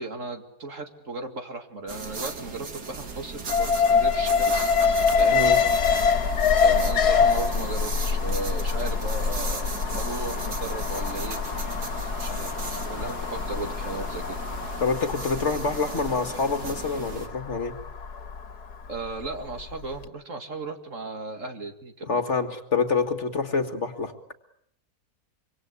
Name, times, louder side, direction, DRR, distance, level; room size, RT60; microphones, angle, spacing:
voice 1, 0.0-4.7 5.2-5.4 6.6-11.4 12.2-14.4 18.9-22.2, right 3 dB, 50° right, 6 dB, 2.5 m, -36 dB
sound 1, 1.9-17.3, right 4 dB, 85° right, 2.8 m, -37 dB
Alarm, 3.5-19.6 19.9-20.0, left 6 dB, 90° left, 2.2 m, -25 dB
voice 2, 14.8-17.8 22.0-24.1, left 4 dB, 50° left, 8 dB, 2.0 m, -26 dB
25.5 x 24.5 x 8.3 m, 0.70 s
omnidirectional pair, 1.6 m